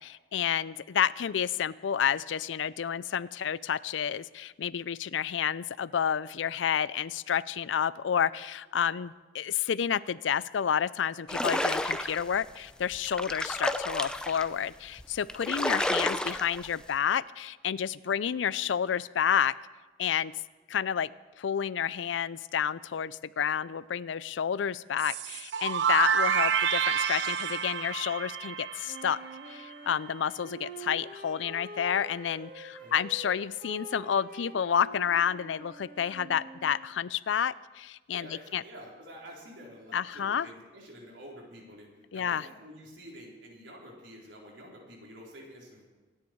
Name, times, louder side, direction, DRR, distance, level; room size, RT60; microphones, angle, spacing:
voice 1, 0.0-19.5 20.0-20.3 20.7-21.1 21.4-29.2 29.5-38.6 39.9-40.5 42.1-42.5, left 8 dB, 85° left, 19 dB, 0.4 m, -30 dB
sound 1, 11.3-12.3 12.9-14.5 15.0-15.1 15.3-16.7, left 1 dB, 5° left, 0.6 m, -31 dB
sound 2, 25.0-29.7, right 7 dB, 70° right, 0.6 m, -29 dB
Wind instrument woodwind instrument, 28.9-36.9, right 2 dB, 50° right, 2.2 m, -46 dB
voice 2, 38.1-45.8, equal, 90° right, -2 dB, 4.2 m, -48 dB
25.5 x 9.9 x 4.6 m, 1.2 s
head